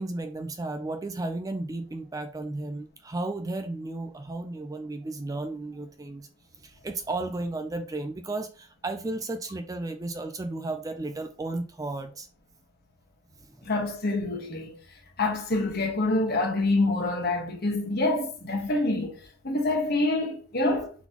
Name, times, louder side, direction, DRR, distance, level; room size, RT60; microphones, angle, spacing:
voice 1, 0.0-6.3 6.6-12.3 13.4-13.7, right 2 dB, 20° right, 0.4 m, -34 dB
voice 2, 13.6-14.8 15.2-19.2 19.4-20.9, left 2 dB, 55° left, 1.2 m, -26 dB
3.9 x 3.9 x 2.9 m
head